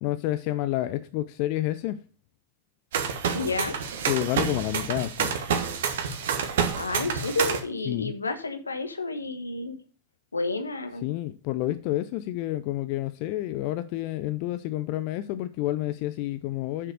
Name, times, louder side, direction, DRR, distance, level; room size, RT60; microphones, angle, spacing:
voice 1, 0.0-2.0 4.1-5.3 7.9-8.1 11.0-16.9, left 15 dB, 45° left, 0.5 m, -29 dB
sound 1, 2.9-7.6, right 7 dB, 60° right, 1.6 m, -28 dB
voice 2, 3.3-3.7 6.8-9.8 10.3-11.0, left 3 dB, 80° left, 1.2 m, -30 dB
7.3 x 6.7 x 6.5 m
figure-of-eight pair, 90°, 0 cm